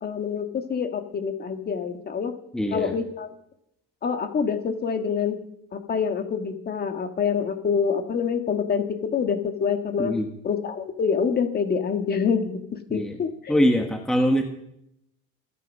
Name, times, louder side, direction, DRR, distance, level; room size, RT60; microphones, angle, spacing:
voice 1, 0.0-2.3 2.7-3.3 4.0-5.4 5.7-10.1 10.4-13.6, left 6 dB, 35° left, 6 dB, 1.8 m, -26 dB
voice 2, 2.5-2.9 10.0-10.3 12.9-13.2 13.5-14.4, equal, ahead, 4 dB, 1.4 m, -22 dB
25.0 x 9.9 x 5.5 m, 0.76 s
cardioid pair, 140°, 30 cm